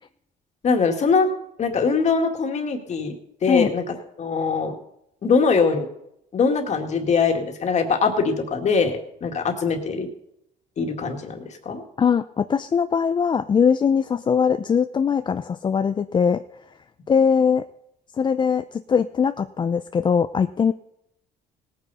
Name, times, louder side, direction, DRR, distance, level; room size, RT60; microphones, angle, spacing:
voice 1, 0.6-1.3 1.6-3.2 3.4-4.8 5.2-5.9 6.3-10.1 10.8-11.8, left 5 dB, 45° left, 4 dB, 2.1 m, -22 dB
voice 2, 12.0-16.4 17.1-17.6 18.2-20.7, left 6 dB, 25° left, 9 dB, 0.4 m, -21 dB
18.5 x 9.2 x 4.2 m, 0.79 s
cardioid pair, 110°, 17 cm